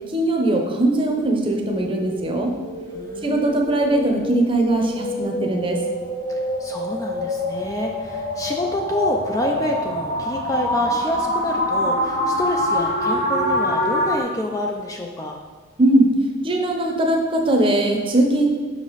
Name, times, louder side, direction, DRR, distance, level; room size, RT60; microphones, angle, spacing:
voice 1, 0.1-2.5 3.2-5.8 15.8-16.1 16.4-18.5, right 1 dB, 25° right, 2 dB, 0.7 m, -20 dB
sound 1, 1.0-14.2, equal, 40° left, 1.3 m, -26 dB
voice 2, 2.9-3.6 6.6-15.4, left 1 dB, 15° left, 1 dB, 0.4 m, -27 dB
6.4 x 5.0 x 4.0 m, 1.5 s
head